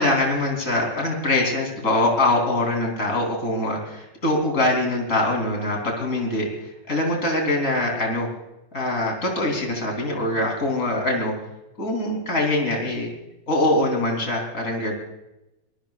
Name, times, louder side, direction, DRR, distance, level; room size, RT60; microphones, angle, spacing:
voice 1, 0.0-8.3 8.7-11.3 11.8-13.1 13.5-14.9, left 2 dB, 45° left, 1 dB, 4.0 m, -23 dB
25.0 x 22.0 x 2.5 m, 0.94 s
omnidirectional pair, 2.0 m